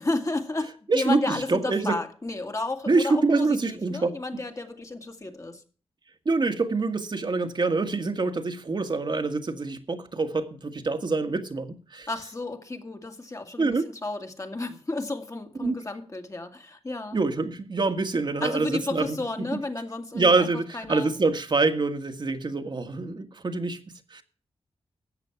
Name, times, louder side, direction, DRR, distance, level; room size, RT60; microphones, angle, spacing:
voice 1, 0.0-5.6 12.1-17.2 18.4-20.5 20.7-21.1, left 2 dB, 30° left, 2.0 m, -32 dB
voice 2, 0.9-2.0 2.9-4.1 6.2-12.1 13.6-13.8 15.6-15.7 17.1-19.5 20.1-24.2, right 3 dB, 45° right, 1.6 m, -25 dB
13.5 x 8.3 x 5.9 m
cardioid pair, 75°, 10 cm